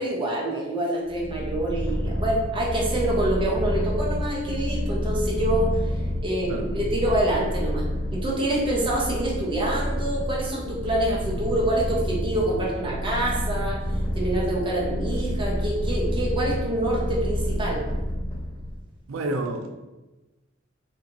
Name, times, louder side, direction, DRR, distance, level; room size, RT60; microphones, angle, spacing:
voice 1, 0.0-5.7 6.2-7.9 8.1-13.8 14.1-17.8, right 1 dB, 25° right, -4 dB, 0.6 m, -26 dB
Purr, 1.1-18.8, equal, 35° left, 1.3 m, -28 dB
voice 2, 19.1-19.7, right 2 dB, 85° right, 5 dB, 0.4 m, -29 dB
2.7 x 2.6 x 2.5 m, 1.1 s
head